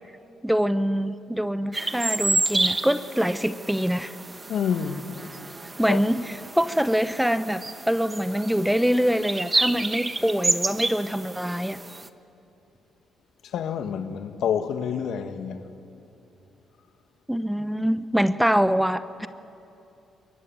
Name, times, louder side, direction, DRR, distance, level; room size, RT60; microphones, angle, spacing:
voice 1, 0.4-4.1 5.8-11.8 17.3-19.3, equal, 5° right, 0.8 m, -24 dB
sound 1, 1.7-12.1, right 2 dB, 20° right, 1.1 m, -30 dB
voice 2, 4.5-5.1 5.9-6.0 13.5-15.6, left 8 dB, 75° left, 1.7 m, -28 dB
23.5 x 22.0 x 9.3 m
cardioid pair, 90°, 0 cm